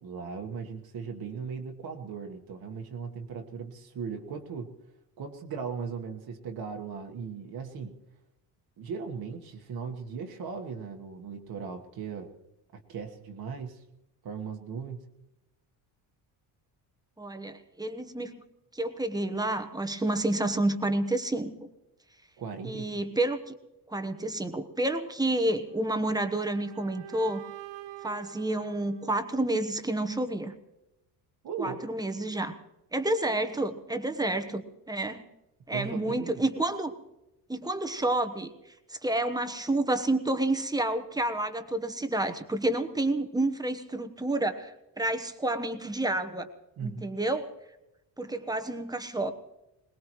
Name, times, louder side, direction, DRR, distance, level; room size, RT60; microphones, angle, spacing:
voice 1, 0.0-4.7 5.2-8.0 8.8-12.3 12.9-13.8 14.2-15.0 22.4-23.0 31.4-31.8 35.7-36.4 46.8-47.0, right 6 dB, 55° right, 3 dB, 1.4 m, -38 dB
voice 2, 17.2-18.4 18.7-21.7 22.6-23.5 23.9-27.4 28.0-30.5 31.6-32.5 32.9-35.2 35.7-36.9 37.5-38.5 38.9-46.5 46.8-47.5 48.2-49.3, right 2 dB, 10° right, 8 dB, 1.1 m, -29 dB
sound 1, 25.6-29.7, right 10 dB, 80° right, 1.0 m, -47 dB
22.0 x 19.5 x 3.1 m, 0.93 s
cardioid pair, 115°, 43 cm